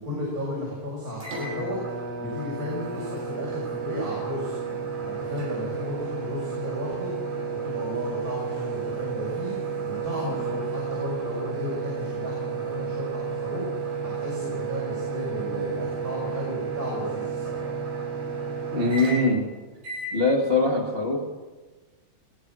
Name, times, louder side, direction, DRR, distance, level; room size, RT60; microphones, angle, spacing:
voice 1, 0.0-4.6 5.0-7.1 7.6-17.6, left 1 dB, 20° right, -6 dB, 6.6 m, -34 dB
sound 1, 1.2-19.4 19.8-20.2, right 5 dB, 70° right, 9.9 m, -32 dB
voice 2, 18.7-19.5 20.1-21.3, left 2 dB, 60° left, -1 dB, 0.6 m, -22 dB
21.0 x 20.0 x 6.4 m, 1.3 s
omnidirectional pair, 5.4 m